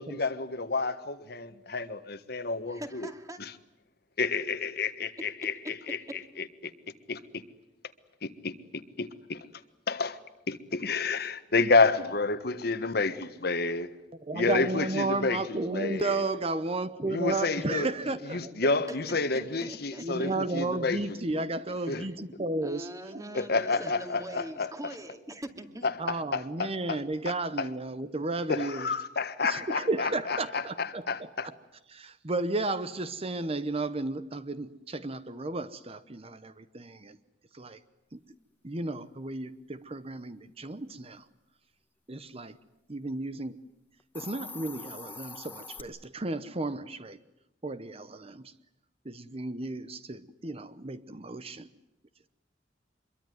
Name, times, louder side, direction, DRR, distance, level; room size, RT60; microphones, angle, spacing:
voice 1, 0.0-3.1 3.4-3.5 4.2-6.7 7.1-7.2 8.2-8.5 9.0-9.4 9.9-10.2 10.5-13.9 14.3-15.4 15.7-16.2 17.1-17.9 18.3-21.0 21.3-21.4 21.9-22.0 23.3-24.7 25.8-27.7 28.5-31.5, left 3 dB, 60° left, 1.5 m, -30 dB
voice 2, 2.7-3.4 5.4-6.2 18.9-20.3 21.7-22.1 22.6-25.9, equal, 20° right, 2.4 m, -43 dB
voice 3, 14.2-18.7 20.0-23.2 24.1-24.2 26.0-28.9 29.4-31.6 31.9-37.2 37.5-37.8 38.1-38.2 38.6-41.2 42.1-42.6 42.9-43.6 44.1-47.2 47.6-48.5 49.0-51.7, right 2 dB, 35° right, 0.9 m, -33 dB
Hiss, 44.0-45.8, left 4 dB, 10° left, 1.5 m, -43 dB
26.0 x 22.5 x 9.5 m
head